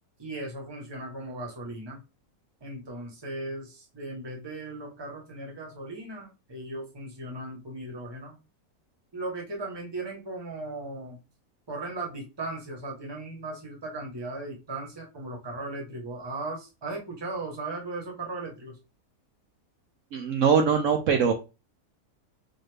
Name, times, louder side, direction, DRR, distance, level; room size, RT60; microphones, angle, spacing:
voice 1, 0.2-2.0 2.6-8.4 9.1-11.2 11.7-18.8, right 2 dB, 20° right, 0.9 m, -37 dB
voice 2, 20.1-21.3, right 6 dB, 65° right, 0.9 m, -22 dB
4.0 x 2.6 x 3.3 m
omnidirectional pair, 1.6 m